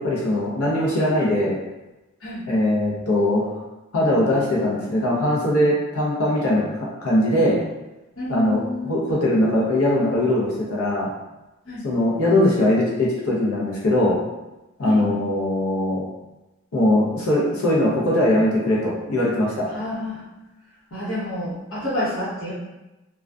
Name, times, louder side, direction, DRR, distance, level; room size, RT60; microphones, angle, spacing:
voice 1, 0.0-1.6 2.5-3.6 3.9-7.6 8.3-11.1 11.8-14.2 14.8-16.0 16.7-19.8, left 1 dB, 85° left, -4 dB, 0.6 m, -21 dB
voice 2, 8.2-9.0 11.7-11.8 14.8-15.1 19.7-20.2 20.9-22.5, left 1 dB, 65° left, -10 dB, 1.0 m, -29 dB
2.4 x 2.3 x 2.2 m, 1.0 s
head